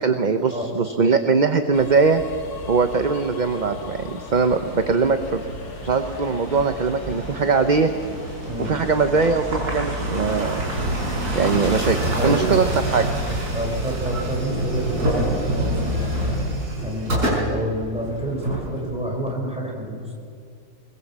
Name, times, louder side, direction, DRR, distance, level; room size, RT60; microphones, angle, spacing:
voice 1, 0.0-2.2 2.7-5.5 5.8-7.9 8.6-10.6 11.3-13.1, right 4 dB, 35° right, 8 dB, 0.9 m, -21 dB
sound 1, 1.7-16.4, left 3 dB, 75° left, 2.2 m, -41 dB
sound 2, 5.0-19.2, right 1 dB, 85° right, 6.0 m, -27 dB
voice 2, 12.2-12.5 13.5-16.4 16.8-20.1, equal, 5° right, -1 dB, 5.1 m, -29 dB
24.0 x 22.0 x 7.5 m, 2.4 s
omnidirectional pair, 1.6 m